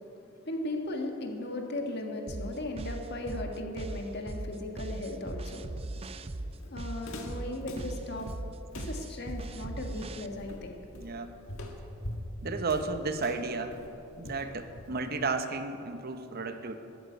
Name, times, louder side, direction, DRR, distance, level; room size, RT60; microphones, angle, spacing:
voice 1, 0.4-5.6 6.7-8.3 8.7-10.8, left 1 dB, 50° left, 2 dB, 1.6 m, -37 dB
sound 1, 2.3-10.3, right 2 dB, 25° right, 0.4 m, -39 dB
Walk footsteps, 5.9-15.2, left 1 dB, 70° left, 1.6 m, -44 dB
voice 2, 10.9-11.3 12.4-13.8 14.2-16.8, right 3 dB, 45° right, 8 dB, 0.8 m, -33 dB
13.0 x 9.2 x 9.2 m, 3.0 s
head